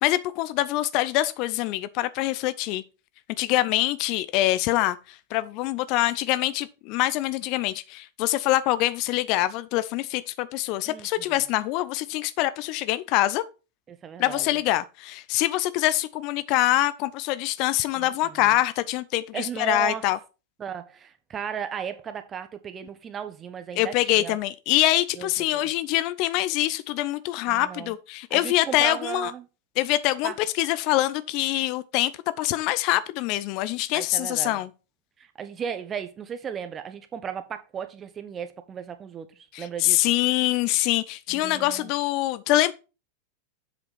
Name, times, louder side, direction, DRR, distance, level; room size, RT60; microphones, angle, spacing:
voice 1, 0.0-2.8 3.4-13.4 14.2-20.2 23.8-29.3 29.8-32.1 32.4-34.7 39.5-42.7, left 16 dB, 40° left, 0.5 m, -24 dB
voice 2, 10.8-11.5 13.9-14.6 18.0-18.6 19.3-20.0 20.6-24.4 25.1-25.6 27.5-27.9 28.3-29.5 30.2-30.3 33.9-34.6 35.2-40.1 41.3-41.9, right 7 dB, 25° right, 1.1 m, -35 dB
7.9 x 4.9 x 5.5 m
figure-of-eight pair, 90°, 0 cm